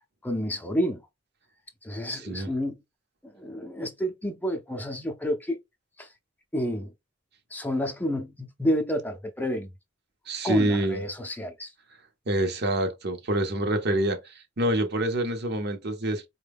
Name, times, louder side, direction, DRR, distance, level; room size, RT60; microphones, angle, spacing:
voice 1, 0.2-1.0 1.8-2.8 3.2-5.6 6.0-6.1 6.5-6.9 7.5-9.7 10.4-11.7, equal, 10° left, 0.6 m, -29 dB
voice 2, 2.2-2.5 10.3-11.0 12.3-16.3, right 1 dB, 60° right, 0.8 m, -26 dB
4.3 x 2.2 x 3.5 m
head